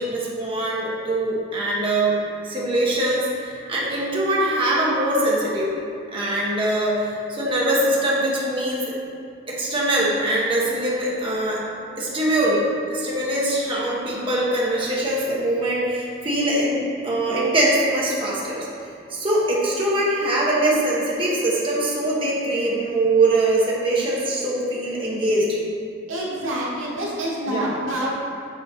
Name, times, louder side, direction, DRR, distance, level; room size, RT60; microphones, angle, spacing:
voice 1, 0.0-5.7 6.1-8.8 9.5-11.6 12.0-12.6 12.9-18.7 19.1-25.6 27.5-27.7, right 1 dB, 25° right, -6 dB, 1.0 m, -22 dB
voice 2, 26.1-28.2, right 1 dB, 85° right, -4 dB, 1.3 m, -27 dB
7.3 x 4.1 x 4.1 m, 2.5 s
head